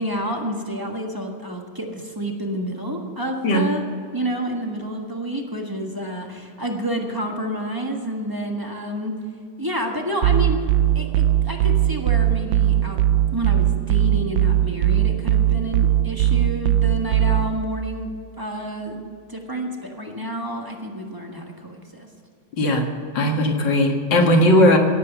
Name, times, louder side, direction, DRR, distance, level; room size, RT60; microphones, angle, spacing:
voice 1, 0.0-3.8 4.1-9.1 9.6-10.6 10.9-13.0 13.3-18.1 18.4-22.1, equal, 10° right, 2 dB, 1.3 m, -29 dB
sound 1, 10.2-17.6, right 12 dB, 85° right, 1.3 m, -19 dB
voice 2, 23.1-24.8, left 1 dB, 70° left, 2 dB, 2.4 m, -17 dB
17.0 x 8.2 x 6.9 m, 2.4 s
omnidirectional pair, 2.1 m